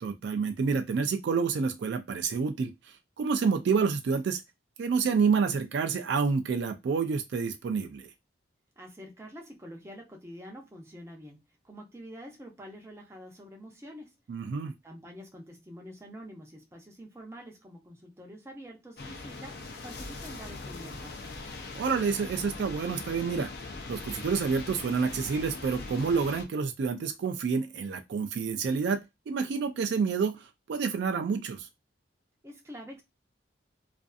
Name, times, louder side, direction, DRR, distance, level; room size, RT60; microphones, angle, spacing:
voice 1, 0.0-2.7 3.2-4.4 4.8-8.1 14.3-14.7 21.7-23.5 23.9-31.7, right 5 dB, 65° right, 0.3 m, -28 dB
voice 2, 8.8-11.4 11.6-14.1 14.8-21.3 32.4-33.0, equal, 15° right, 0.6 m, -46 dB
sound 1, 19.0-26.5, left 3 dB, 55° left, 0.5 m, -41 dB
2.5 x 2.5 x 2.3 m
head